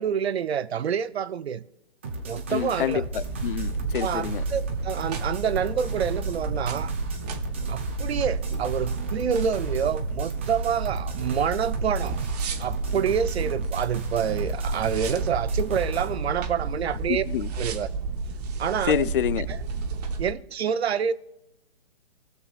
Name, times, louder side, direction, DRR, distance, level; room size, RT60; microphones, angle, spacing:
voice 1, 0.0-1.6 2.2-3.1 4.0-6.9 7.7-12.2 12.6-17.2 17.6-17.9 18.6-19.1 19.5-19.6 20.2-21.1, right 8 dB, 75° right, 0.6 m, -27 dB
sound 1, 2.0-16.1, right 2 dB, 10° right, 0.4 m, -35 dB
voice 2, 2.5-4.4 17.1-17.5 18.9-19.5, left 10 dB, 55° left, 0.5 m, -27 dB
sound 2, 3.1-20.3, right 4 dB, 40° right, 0.9 m, -31 dB
19.5 x 6.9 x 2.4 m
hypercardioid pair, 145°, 32 cm